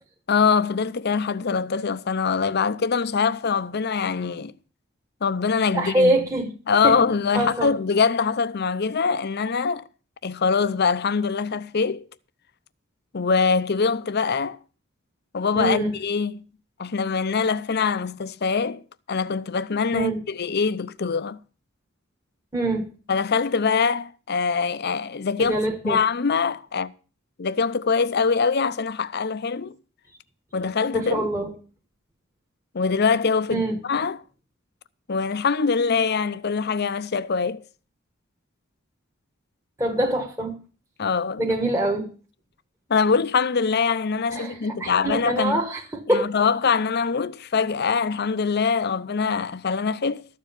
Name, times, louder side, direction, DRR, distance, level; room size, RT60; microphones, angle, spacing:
voice 1, 0.3-4.5 5.2-6.2 6.7-9.8 10.2-12.1 13.1-14.6 15.3-16.4 16.8-18.8 19.1-21.4 23.1-25.6 25.8-26.9 27.4-29.7 30.5-31.3 32.7-34.2 35.1-37.6 41.0-41.5 42.9-45.6 46.1-50.3, left 5 dB, 55° left, 0.7 m, -23 dB
voice 2, 5.7-6.5 6.8-7.0 7.3-7.7 15.5-15.9 19.9-20.2 22.5-22.8 25.4-26.0 30.9-31.5 33.5-33.8 39.8-40.6 41.4-42.1 44.3-46.3, right 1 dB, 15° right, 1.4 m, -24 dB
13.5 x 7.4 x 7.0 m
head